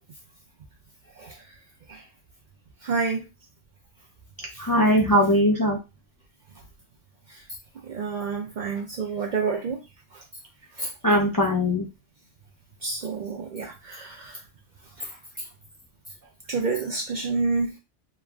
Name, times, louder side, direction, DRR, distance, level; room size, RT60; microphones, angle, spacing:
voice 1, 2.8-3.2 7.8-9.8 10.8-10.9 12.8-14.4 15.0-15.2 16.5-17.8, right 4 dB, 60° right, 1 dB, 0.5 m, -28 dB
voice 2, 4.6-5.8 11.0-11.9, equal, 35° left, -2 dB, 0.3 m, -20 dB
3.1 x 2.2 x 2.3 m, 0.26 s
omnidirectional pair, 1.2 m